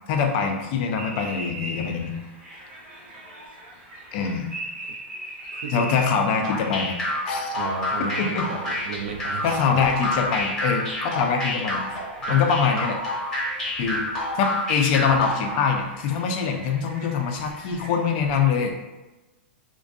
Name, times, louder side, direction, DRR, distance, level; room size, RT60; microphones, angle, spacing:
voice 1, 0.1-2.2 4.1-4.5 5.7-6.9 7.3-7.6 8.0-8.4 9.4-11.9 12.3-13.0 13.8-14.1 14.3-18.7, left 6 dB, 45° left, 3 dB, 0.4 m, -24 dB
sound 1, 0.9-18.5, right 1 dB, 20° right, 0.6 m, -41 dB
voice 2, 5.5-5.9 7.5-9.8 12.2-12.6, right 5 dB, 80° right, 3 dB, 0.4 m, -33 dB
sound 2, 6.4-15.6, left 1 dB, 10° left, 0.8 m, -28 dB
2.5 x 2.2 x 2.4 m, 1.1 s
hypercardioid pair, 140°, 6 cm